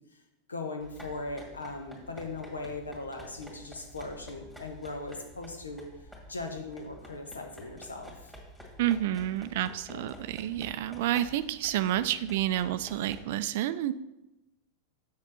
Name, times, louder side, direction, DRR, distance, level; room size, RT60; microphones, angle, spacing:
voice 1, 0.5-5.9 6.3-8.3 9.9-10.1, left 3 dB, 75° left, 5 dB, 1.1 m, -39 dB
sound 1, 0.8-13.2, equal, 5° left, 1.9 m, -50 dB
voice 2, 8.8-13.9, right 12 dB, 50° right, 14 dB, 0.4 m, -29 dB
6.8 x 6.6 x 4.2 m, 0.95 s
figure-of-eight pair, 90°, 0 cm